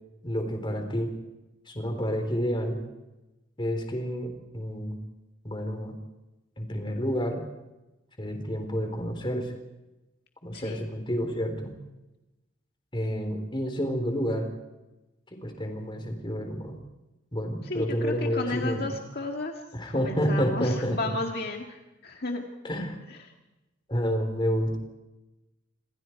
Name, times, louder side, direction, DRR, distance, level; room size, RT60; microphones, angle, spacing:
voice 1, 0.2-1.1 1.7-2.8 3.6-5.0 5.4-6.0 6.6-7.4 8.2-9.5 10.4-11.7 12.9-14.5 15.3-16.8 17.3-19.0 19.7-21.2 22.6-23.0 23.9-24.8, equal, 25° left, 5 dB, 4.0 m, -29 dB
voice 2, 10.5-10.8 17.6-19.6 19.9-22.4 23.1-23.3, left 2 dB, 55° left, 2 dB, 2.0 m, -33 dB
27.0 x 27.0 x 4.7 m, 1.0 s
head